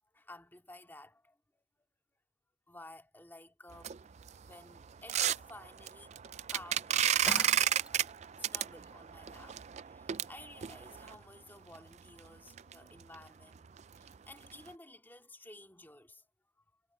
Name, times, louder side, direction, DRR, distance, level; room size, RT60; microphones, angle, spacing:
voice 1, 0.1-1.6 2.7-4.0 4.4-7.7 8.4-9.6 9.9-16.2 16.6-16.7, left 2 dB, 10° left, 2.5 m, -54 dB
sound 1, 3.7-11.1 11.7-11.8 12.2-12.3 12.6-12.7 13.0-13.1 13.5-13.8 14.1-14.2 14.7-14.8, right 10 dB, 40° right, 0.4 m, -33 dB
Shatter, 7.3-8.1, right 1 dB, 5° right, 0.7 m, -40 dB
head